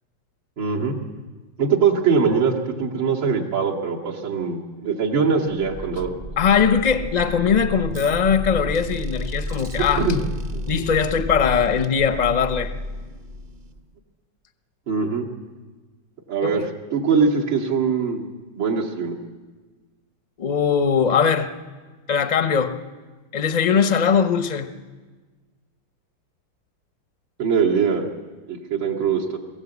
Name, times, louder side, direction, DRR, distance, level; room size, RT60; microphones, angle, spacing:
voice 1, 0.6-0.9 1.6-6.1 10.0-10.2 10.5-10.6 14.9-15.3 16.3-16.6 16.9-18.2 18.6-19.1 27.4-28.1 28.5-29.4, right 5 dB, 75° right, -2 dB, 3.1 m, -22 dB
sound 1, 5.4-13.9, equal, 30° right, 0.8 m, -32 dB
voice 2, 6.4-10.0 10.7-12.7 16.4-16.5 20.4-21.5 22.1-22.8 23.3-24.7, left 7 dB, 40° left, 9 dB, 0.6 m, -20 dB
22.5 x 15.0 x 8.2 m, 1.3 s
omnidirectional pair, 2.1 m